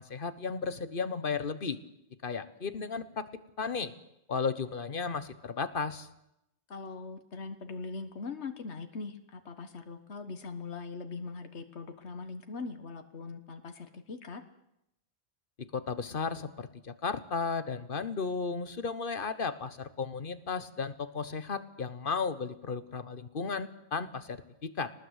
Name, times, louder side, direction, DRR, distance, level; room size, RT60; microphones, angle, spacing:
voice 1, 0.0-1.8 2.2-3.3 3.6-3.9 4.3-6.1 15.7-24.9, left 5 dB, 50° left, 12 dB, 1.4 m, -34 dB
voice 2, 6.7-14.4, left 4 dB, 75° left, 7 dB, 1.7 m, -41 dB
23.5 x 19.0 x 8.2 m, 0.83 s
omnidirectional pair, 1.1 m